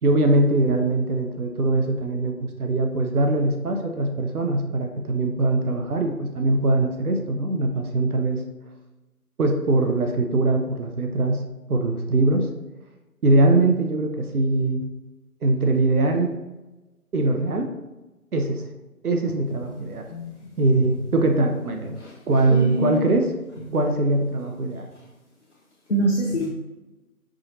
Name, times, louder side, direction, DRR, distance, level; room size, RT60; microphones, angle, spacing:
voice 1, 0.0-8.4 9.4-11.4 11.7-12.5 13.2-14.9 15.4-16.3 17.1-17.7 18.3-18.6 19.0-20.0 20.6-22.0 22.3-23.3 23.7-24.9, right 2 dB, 75° right, 4 dB, 0.7 m, -22 dB
voice 2, 22.5-23.0 23.6-23.8 25.9-26.5, right 1 dB, 50° left, -4 dB, 0.7 m, -25 dB
4.7 x 2.9 x 2.7 m, 1.1 s
figure-of-eight pair, 165°, 45 cm